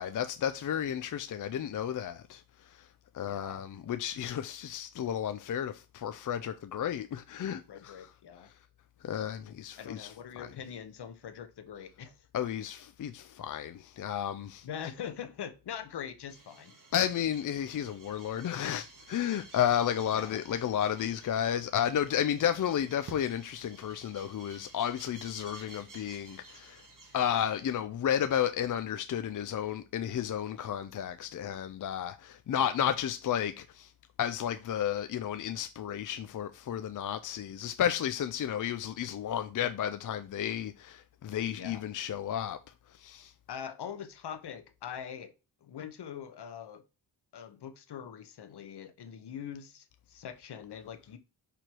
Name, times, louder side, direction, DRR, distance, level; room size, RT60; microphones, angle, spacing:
voice 1, 0.0-2.9 3.1-8.1 9.0-10.5 12.3-14.7 16.9-26.8 27.1-33.9 34.2-42.6 42.9-43.3, left 9 dB, 50° left, 0.5 m, -32 dB
voice 2, 3.2-3.6 7.5-8.5 9.8-12.3 14.6-16.8 20.1-20.4 41.5-41.9 43.5-45.3 45.6-46.8 47.3-51.2, left 8 dB, 70° left, 1.1 m, -43 dB
sound 1, 16.3-27.6, right 3 dB, 50° right, 2.1 m, -53 dB
5.0 x 4.6 x 6.0 m
wide cardioid pair, 145°, 41 cm